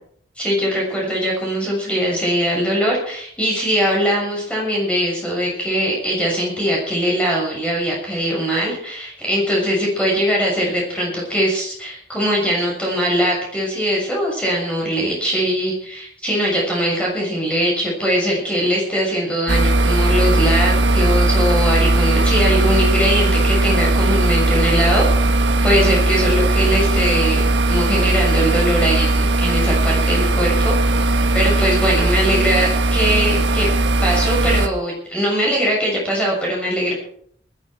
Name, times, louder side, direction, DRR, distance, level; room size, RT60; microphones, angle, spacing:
voice 1, 0.4-25.0 25.6-30.7 31.3-33.7 34.0-36.9, equal, 5° left, -3 dB, 7.0 m, -21 dB
sound 1, 19.5-34.7, right 2 dB, 85° right, 1.4 m, -17 dB
20.0 x 13.0 x 4.6 m, 0.64 s
head